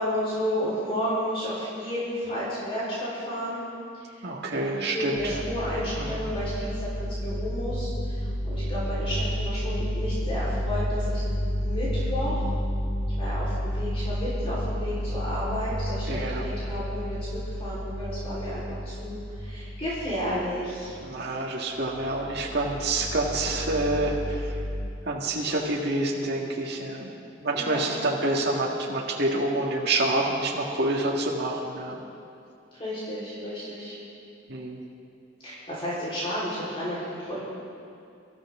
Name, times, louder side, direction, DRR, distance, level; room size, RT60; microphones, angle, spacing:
voice 1, 0.0-3.6 3.9-11.3 11.6-12.4 13.2-21.0 27.5-27.8 32.7-34.0 35.4-37.4, equal, 30° left, -9 dB, 4.3 m, -32 dB
voice 2, 4.2-5.4 6.0-6.2 16.1-16.4 21.0-24.5 25.1-27.1 27.4-32.0 34.5-34.8, right 2 dB, 60° right, -3 dB, 1.8 m, -27 dB
sound 1, 5.1-21.1 21.8-24.9, equal, 75° left, 1.8 m, -31 dB
25.0 x 14.0 x 3.7 m, 2.6 s
head